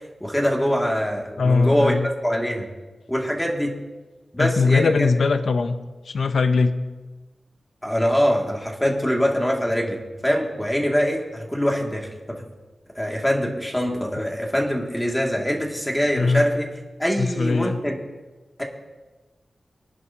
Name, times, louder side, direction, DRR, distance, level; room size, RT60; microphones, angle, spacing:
voice 1, 0.2-1.9 2.2-2.7 3.1-3.7 4.3-4.9 7.8-12.4 12.9-16.7 17.0-18.0 18.6-18.7, equal, 10° left, -1 dB, 2.4 m, -23 dB
voice 2, 1.4-2.1 4.4-5.8 6.0-6.7 16.2-16.4 17.2-17.8, left 4 dB, 85° left, 9 dB, 0.7 m, -20 dB
23.5 x 11.0 x 2.9 m, 1.2 s
wide cardioid pair, 85°, 0 cm